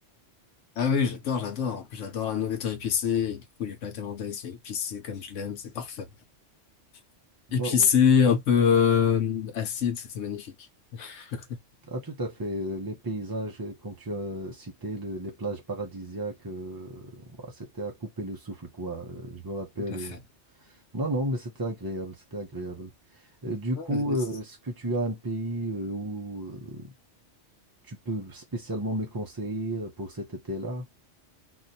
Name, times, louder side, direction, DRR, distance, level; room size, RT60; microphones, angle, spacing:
voice 1, 0.8-6.1 7.5-10.5 10.9-11.5 19.9-20.1 23.8-24.2, left 7 dB, 80° left, 1.1 m, -26 dB
voice 2, 7.5-7.9 11.8-20.2 20.6-26.9 27.8-30.9, right 1 dB, 30° right, 0.4 m, -33 dB
2.6 x 2.3 x 3.9 m
omnidirectional pair, 1.2 m